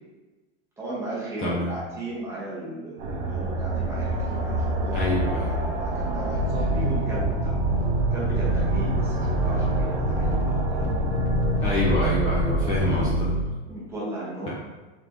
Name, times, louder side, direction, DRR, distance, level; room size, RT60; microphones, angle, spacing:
voice 1, 0.8-5.0 5.5-7.6 8.1-11.1 13.6-14.5, right 1 dB, 10° right, -7 dB, 0.9 m, -35 dB
voice 2, 1.4-1.7 4.9-5.5 11.6-13.3, left 1 dB, 20° left, -7 dB, 0.5 m, -26 dB
sound 1, 3.0-13.1, right 1 dB, 50° right, 0.7 m, -27 dB
sound 2, 6.4-13.4, right 1 dB, 85° left, 1.0 m, -26 dB
3.7 x 3.6 x 3.0 m, 1.2 s
supercardioid pair, 160°, 33 cm